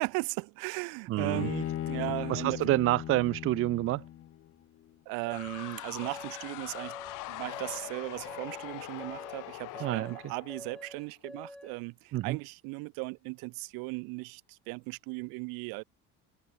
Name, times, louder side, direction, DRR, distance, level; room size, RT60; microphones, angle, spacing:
voice 1, 0.0-2.6 5.1-6.9 7.3-15.8, right 29 dB, 80° right, 2.3 m, -37 dB
voice 2, 1.1-1.5 2.3-4.0 9.8-10.1 12.1-12.4, right 16 dB, 40° right, 0.5 m, -28 dB
Bowed string instrument, 1.2-4.5, left 12 dB, 40° left, 3.0 m, -37 dB
sound 1, 5.3-11.1, left 19 dB, 60° left, 4.2 m, -43 dB
sound 2, 5.3-11.8, left 1 dB, ahead, 5.1 m, -47 dB
cardioid pair, 155°, 34 cm